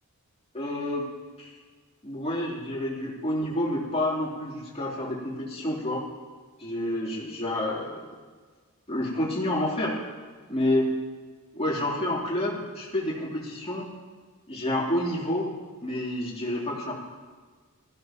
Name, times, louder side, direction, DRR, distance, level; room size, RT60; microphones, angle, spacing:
voice 1, 0.5-1.0 1.4-1.5 2.0-6.0 6.6-8.1 8.9-10.0 10.5-10.9 11.5-13.9 14.5-15.5 15.8-16.9, left 1 dB, 30° left, -5 dB, 3.5 m, -29 dB
20.0 x 15.5 x 3.1 m, 1.5 s
head